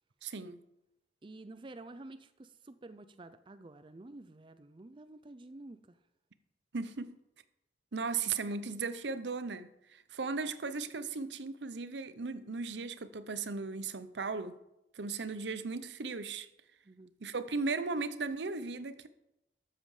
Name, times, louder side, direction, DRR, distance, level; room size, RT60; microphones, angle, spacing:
voice 1, 0.2-0.6 6.7-7.2 7.9-14.5 14.9-16.5 17.2-19.1, right 4 dB, 85° right, 0.8 m, -37 dB
voice 2, 1.2-6.0 16.8-17.1, right 2 dB, 30° right, 0.5 m, -50 dB
12.5 x 7.6 x 4.9 m
head